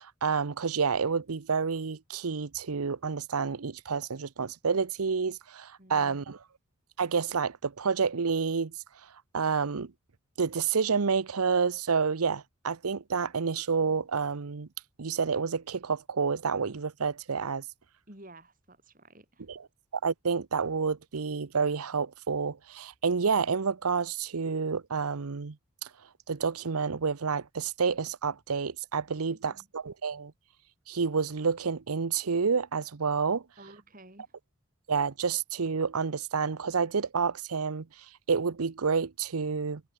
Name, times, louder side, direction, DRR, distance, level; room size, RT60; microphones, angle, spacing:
voice 1, 0.0-6.4 7.0-8.7 9.3-9.9 10.4-14.7 15.0-17.6 19.5-19.6 20.0-25.6 25.8-25.9 26.3-30.3 30.9-33.4 34.9-37.9 38.3-39.8, right 5 dB, 90° right, 0.8 m, -29 dB
voice 2, 5.8-6.3 18.1-19.5 29.2-29.7 33.6-34.3, right 1 dB, 40° right, 5.1 m, -52 dB
head